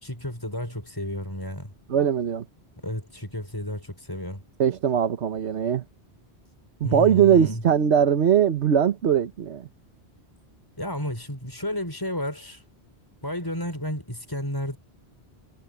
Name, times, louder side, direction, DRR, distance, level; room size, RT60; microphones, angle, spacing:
voice 1, 0.0-1.7 2.8-4.4 6.8-7.6 10.8-12.6 13.2-14.8, equal, 20° left, 5.2 m, -32 dB
voice 2, 1.9-2.4 4.6-5.8 6.8-9.7, right 8 dB, 85° right, 1.3 m, -21 dB
omnidirectional pair, 1.1 m